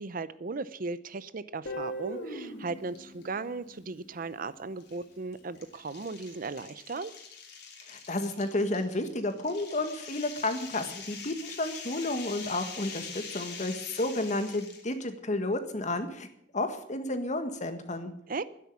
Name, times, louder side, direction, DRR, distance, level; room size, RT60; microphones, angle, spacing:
voice 1, 0.0-7.1 18.3-18.4, right 3 dB, 50° right, 15 dB, 0.6 m, -37 dB
Guitar, 1.6-4.6, equal, 90° left, 3.0 m, -40 dB
sound 1, 2.9-3.3 3.7-3.8 4.8-14.9, left 6 dB, 65° left, 3.0 m, -44 dB
voice 2, 7.9-16.3 16.5-18.1, left 2 dB, 40° left, 8 dB, 1.7 m, -31 dB
12.0 x 10.5 x 8.6 m, 0.70 s
head